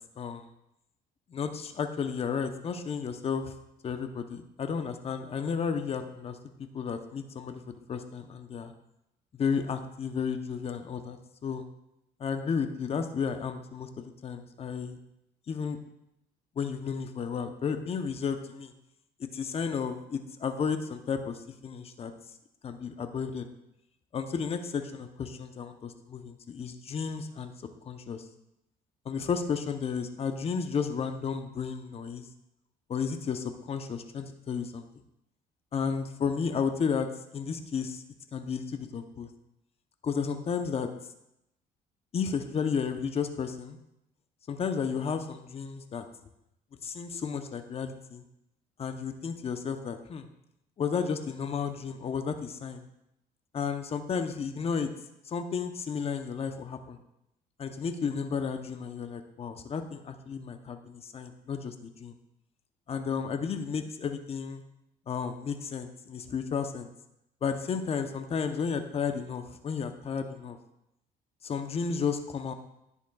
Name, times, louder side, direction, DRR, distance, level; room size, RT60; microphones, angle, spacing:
voice 1, 0.2-0.5 1.3-3.5 3.8-6.4 6.7-7.6 7.9-8.7 9.3-11.6 12.2-15.0 15.5-15.8 16.6-18.7 19.2-22.1 22.6-23.5 24.1-27.5 27.9-28.2 29.0-32.3 32.9-34.9 35.7-38.0 38.3-39.3 40.0-40.9 42.1-43.8 44.5-46.0 46.8-48.2 48.8-50.3 50.8-52.9 53.5-54.9 55.3-57.0 57.6-62.1 62.9-64.6 65.1-66.9 67.4-70.6 71.4-72.5, left 6 dB, 35° left, 7 dB, 0.8 m, -33 dB
10.5 x 10.0 x 2.4 m, 0.83 s
cardioid pair, 110°, 17 cm